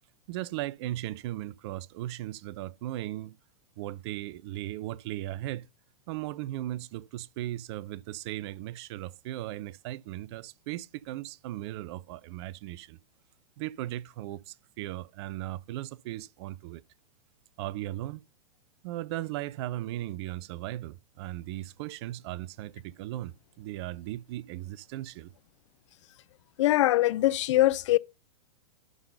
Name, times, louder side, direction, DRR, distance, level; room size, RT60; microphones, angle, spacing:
voice 1, 0.3-3.4 3.8-5.7 6.1-13.0 13.6-16.8 17.6-18.2 18.8-25.3, right 15 dB, 45° right, 0.5 m, -37 dB
voice 2, 26.6-28.0, left 16 dB, 55° left, 0.5 m, -22 dB
11.0 x 3.8 x 5.3 m
figure-of-eight pair, 100°, 19 cm